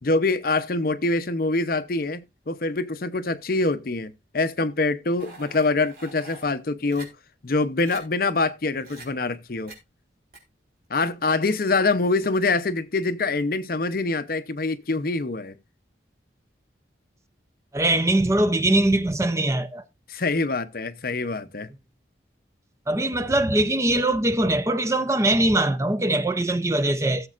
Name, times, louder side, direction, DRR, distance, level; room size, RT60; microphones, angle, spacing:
voice 1, 0.0-7.1 7.4-9.7 10.9-15.5 20.1-21.7, left 3 dB, 50° left, 0.7 m, -25 dB
sound 1, 5.2-6.4 6.9-7.1 7.5-7.6 7.8-8.0 8.8-9.1 9.7-9.8 10.3-10.4, right 2 dB, 50° right, 4.1 m, -44 dB
voice 2, 17.7-19.8 22.9-27.3, right 1 dB, 15° right, 0.5 m, -22 dB
17.5 x 7.3 x 2.4 m
head